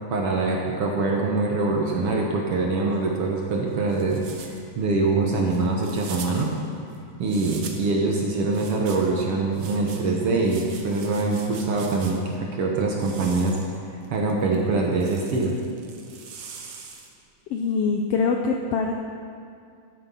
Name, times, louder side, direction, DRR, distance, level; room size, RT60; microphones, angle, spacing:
voice 1, 0.1-6.5 7.2-13.6 14.1-15.5, right 3 dB, 60° right, 0 dB, 1.7 m, -24 dB
sound 1, 2.9-8.0 8.5-12.4 12.9-17.3, right 5 dB, 80° right, 1.0 m, -43 dB
voice 2, 17.5-18.9, left 5 dB, 80° left, 2 dB, 1.4 m, -23 dB
12.0 x 8.6 x 5.5 m, 2.3 s
omnidirectional pair, 3.5 m